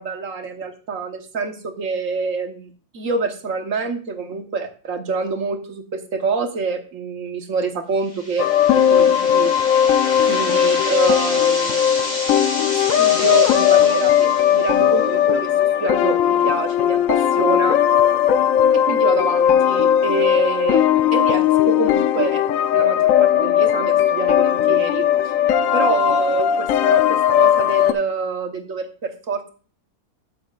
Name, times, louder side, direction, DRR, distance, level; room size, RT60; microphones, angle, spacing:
voice 1, 0.0-8.5 8.9-9.6 10.2-11.8 13.0-15.5 15.8-17.8 18.7-20.8 21.1-22.4 22.7-25.3 25.7-29.4, right 4 dB, 55° right, 5 dB, 1.5 m, -26 dB
sound 1, 8.1-15.0, left 1 dB, 50° left, 3.2 m, -30 dB
sound 2, 8.4-27.9, left 10 dB, 65° left, 0.9 m, -17 dB
12.5 x 7.1 x 2.4 m, 0.39 s
omnidirectional pair, 1.7 m